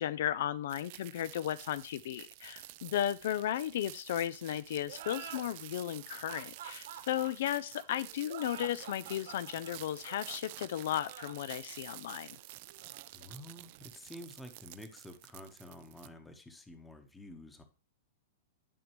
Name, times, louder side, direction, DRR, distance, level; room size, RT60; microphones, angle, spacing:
voice 1, 0.0-12.4, left 11 dB, 60° left, 17 dB, 0.3 m, -35 dB
sound 1, 0.7-16.1, right 18 dB, 45° right, 0.4 m, -50 dB
sound 2, 4.9-14.1, right 9 dB, 70° right, 1.7 m, -49 dB
voice 2, 13.1-17.6, left 1 dB, 5° left, 7 dB, 1.0 m, -50 dB
11.0 x 5.2 x 3.0 m, 0.35 s
supercardioid pair, 160°, 0 cm